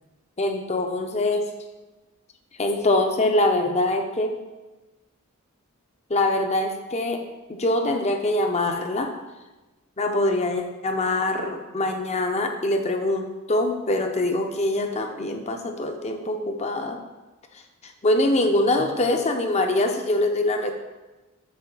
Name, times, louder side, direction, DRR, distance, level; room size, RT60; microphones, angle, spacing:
voice 1, 0.4-1.5 2.6-4.4 6.1-7.2 7.5-9.1 10.0-17.0 17.8-20.7, left 2 dB, 30° left, 5 dB, 0.6 m, -24 dB
7.7 x 3.2 x 6.0 m, 1.1 s
head